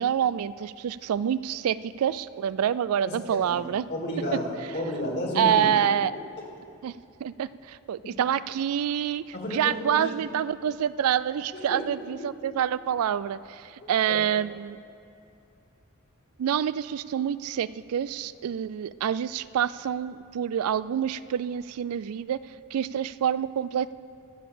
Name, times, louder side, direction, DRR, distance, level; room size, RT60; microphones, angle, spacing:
voice 1, 0.0-3.8 5.4-6.1 6.8-9.2 9.5-14.8 16.4-22.4 22.7-23.9, right 9 dB, 90° right, 17 dB, 0.3 m, -27 dB
voice 2, 3.0-3.4 3.9-5.6 8.0-8.1 9.3-10.1 11.5-11.8 14.1-14.2, left 1 dB, 50° left, -1 dB, 2.2 m, -31 dB
13.0 x 7.1 x 6.9 m, 2.7 s
head